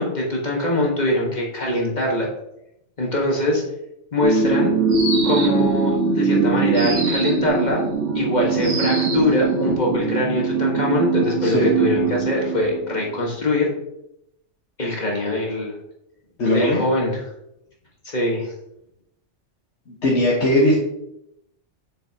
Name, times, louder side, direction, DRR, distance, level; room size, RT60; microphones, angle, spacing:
voice 1, 0.0-2.3 3.0-3.6 4.1-4.7 5.2-7.8 8.1-13.7 14.8-15.8 16.5-17.2 18.0-18.5, left 1 dB, 40° left, -2 dB, 1.5 m, -22 dB
sound 1, 4.2-13.2, right 4 dB, 80° right, 1.4 m, -22 dB
sound 2, 4.9-5.7 6.8-7.5 8.6-9.3, right 2 dB, 55° right, 1.5 m, -28 dB
voice 2, 11.4-11.7 16.4-16.8 19.9-20.7, left 1 dB, 70° left, -5 dB, 1.5 m, -19 dB
7.3 x 5.8 x 2.8 m, 0.82 s
omnidirectional pair, 1.2 m